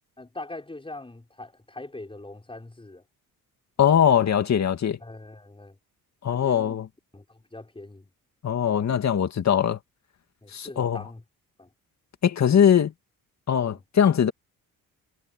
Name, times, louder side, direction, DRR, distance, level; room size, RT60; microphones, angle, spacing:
voice 1, 0.2-3.0 5.0-5.8 6.3-6.8 7.1-8.1 10.4-11.2 11.6-11.7 13.6-13.8, left 2 dB, 15° left, 6.0 m, -42 dB
voice 2, 3.8-5.0 6.2-6.9 8.4-9.8 10.5-11.0 12.2-12.9 13.5-14.3, left 8 dB, 50° left, 2.2 m, -21 dB
cardioid pair, 95°, 36 cm